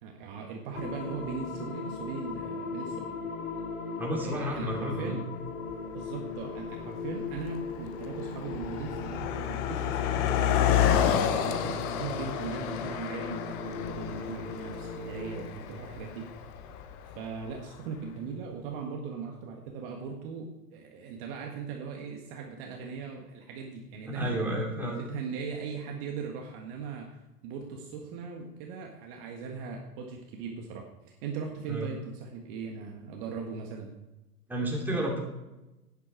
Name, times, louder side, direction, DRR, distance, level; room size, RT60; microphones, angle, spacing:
voice 1, 0.0-3.2 4.2-5.2 5.9-11.0 11.4-16.3 17.1-24.5 24.8-33.9, right 5 dB, 35° right, 1 dB, 1.7 m, -39 dB
sound 1, 0.7-15.4, left 5 dB, 60° left, 2.3 m, -39 dB
voice 2, 4.0-5.2 24.1-25.0 31.6-31.9 34.5-35.2, equal, 5° right, -2 dB, 2.8 m, -31 dB
Car passing by, 5.7-5.8 6.6-6.8 7.1-17.5, left 9 dB, 20° left, 0.5 m, -30 dB
12.0 x 9.9 x 4.6 m, 1.0 s
figure-of-eight pair, 115°, 46 cm